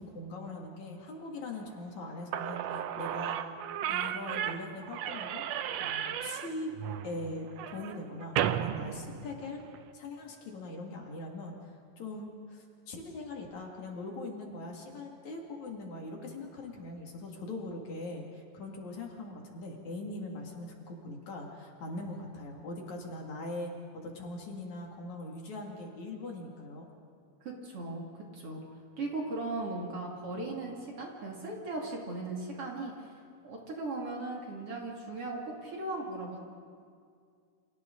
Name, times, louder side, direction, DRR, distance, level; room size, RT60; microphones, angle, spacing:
voice 1, 0.0-3.4 3.9-5.4 5.8-6.7 7.0-9.6 9.9-23.7 24.0-26.9, left 2 dB, 60° left, 0 dB, 3.6 m, -41 dB
Slam / Squeak, 2.0-2.1 2.3-9.8, right 10 dB, 90° right, 1.4 m, -34 dB
voice 2, 27.4-28.6 29.0-33.1 33.4-36.4, right 2 dB, 45° right, -1 dB, 3.1 m, -38 dB
29.5 x 27.0 x 3.9 m, 2.2 s
omnidirectional pair, 3.8 m